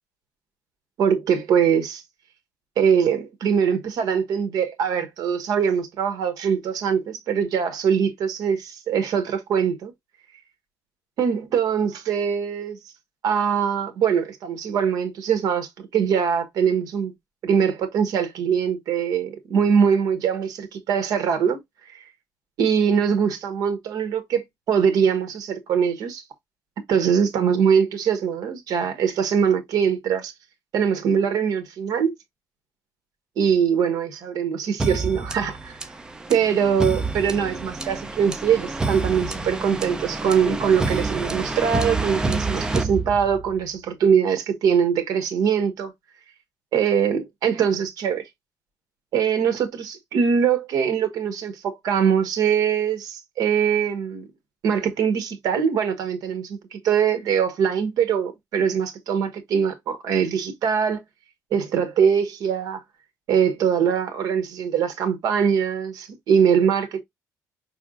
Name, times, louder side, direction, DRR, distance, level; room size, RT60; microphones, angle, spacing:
voice 1, 1.0-2.0 2.8-9.9 11.2-12.8 13.2-17.1 17.4-21.6 21.8-22.0 22.6-26.2 26.9-30.3 30.7-32.1 33.4-35.8 36.3-45.9 46.7-48.2 49.1-54.3 54.6-61.0 61.5-62.8 63.3-67.0, right 7 dB, 65° right, 1.2 m, -22 dB
sound 1, 34.8-43.6, right 3 dB, 10° right, 0.5 m, -28 dB
5.6 x 3.4 x 2.4 m
cardioid pair, 150°, 7 cm